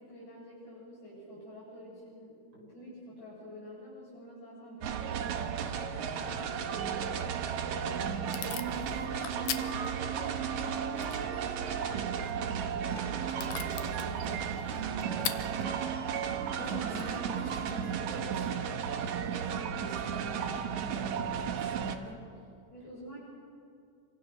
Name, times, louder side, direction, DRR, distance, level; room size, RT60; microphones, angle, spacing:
voice 1, 0.0-15.7 22.7-23.2, equal, 60° left, -10 dB, 9.4 m, -48 dB
sound 1, 4.8-22.0, right 7 dB, 70° right, 2.4 m, -34 dB
Packing tape duct tape / Tearing, 7.4-18.2, left 11 dB, 85° left, 2.7 m, -44 dB
sound 2, 8.5-10.1 10.4-10.5 10.7-11.7 12.0-12.3 12.7-14.1 15.3-15.7, left 4 dB, 25° left, 2.3 m, -52 dB
voice 2, 16.6-18.4 18.7-18.8 19.1-22.1, right 1 dB, 50° right, -3 dB, 7.8 m, -43 dB
27.5 x 25.0 x 6.4 m, 2.5 s
omnidirectional pair, 3.7 m